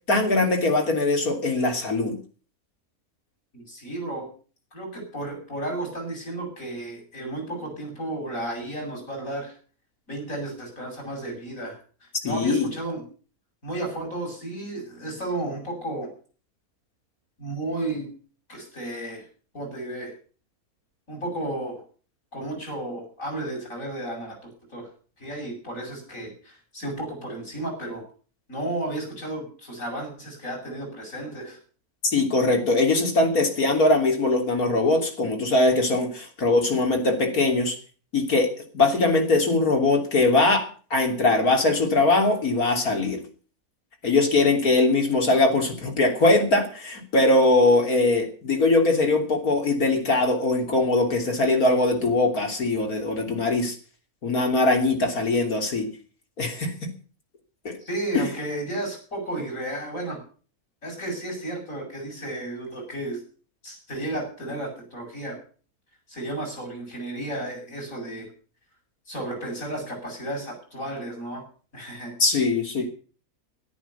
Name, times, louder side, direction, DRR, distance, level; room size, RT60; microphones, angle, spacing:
voice 1, 0.1-2.2 12.2-12.7 32.1-37.8 38.1-43.2 44.0-53.7 54.2-55.9 56.4-56.9 57.7-57.8 58.1-58.3 72.2-72.8, left 2 dB, 75° left, 3 dB, 3.6 m, -21 dB
voice 2, 3.5-4.3 4.7-9.5 10.1-11.8 12.2-13.0 13.6-16.1 17.4-18.1 18.5-19.2 19.5-20.1 21.1-21.8 22.3-24.4 24.7-24.9 25.2-28.0 28.5-31.6 57.9-60.2 60.8-63.2 63.6-65.4 66.1-68.3 69.1-71.4 71.7-72.2, right 1 dB, 60° left, 0 dB, 8.5 m, -33 dB
13.5 x 12.5 x 7.0 m, 0.40 s
omnidirectional pair, 1.5 m